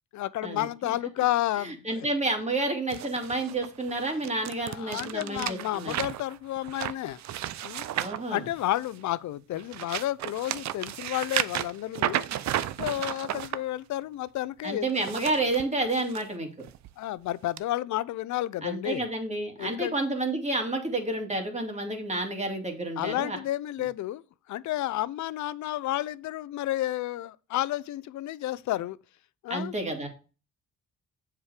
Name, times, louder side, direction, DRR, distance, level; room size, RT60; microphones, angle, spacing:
voice 1, 0.1-2.1 4.7-7.2 7.6-7.8 8.3-12.2 12.8-14.9 17.0-19.1 19.6-20.0 23.0-24.2 24.5-29.0 29.4-29.7, left 14 dB, 70° left, 0.5 m, -31 dB
voice 2, 1.6-6.0 7.9-8.4 14.6-16.6 18.6-23.4 29.5-30.1, right 2 dB, 20° right, 2.5 m, -30 dB
sound 1, 2.9-9.0 9.5-13.6 14.8-16.2 16.7-16.9 17.6-17.7, right 12 dB, 65° right, 0.6 m, -33 dB
7.3 x 4.9 x 4.9 m
cardioid pair, 90°, 30 cm